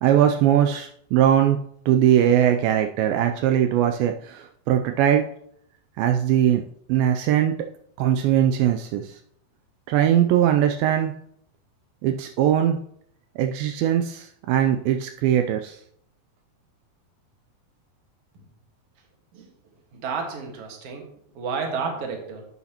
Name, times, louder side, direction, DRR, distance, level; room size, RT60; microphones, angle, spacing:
voice 1, 0.0-5.3 6.0-6.6 6.9-7.5 8.0-9.2 9.9-11.1 12.0-12.8 13.4-15.8, right 10 dB, 80° right, 5 dB, 2.3 m, -20 dB
voice 2, 19.9-21.1 21.3-22.5, right 5 dB, 50° right, 2 dB, 2.1 m, -31 dB
11.5 x 8.1 x 2.9 m, 0.69 s
omnidirectional pair, 4.3 m